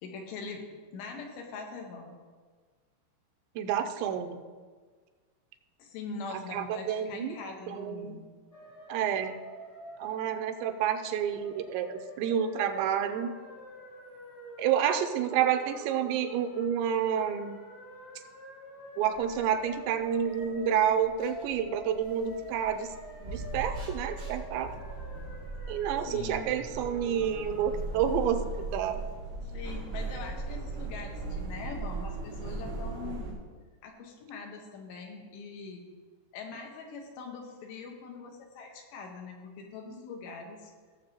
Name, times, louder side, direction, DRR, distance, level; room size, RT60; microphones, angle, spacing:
voice 1, 0.0-0.6 0.9-2.1 5.8-8.3 26.0-26.5 29.5-33.4 33.8-35.8 36.3-40.7, left 4 dB, 80° left, 2 dB, 3.3 m, -42 dB
voice 2, 3.6-4.4 6.5-7.3 7.7-8.2 8.9-9.4 10.0-13.4 14.6-17.6 19.0-22.9 23.2-24.7 25.7-29.0, right 8 dB, 85° right, 7 dB, 2.9 m, -29 dB
sound 1, 8.5-27.8, equal, 40° left, 1.4 m, -47 dB
sound 2, 19.1-33.3, right 3 dB, 35° right, 2.8 m, -39 dB
17.0 x 7.3 x 2.9 m, 1.5 s
omnidirectional pair, 5.1 m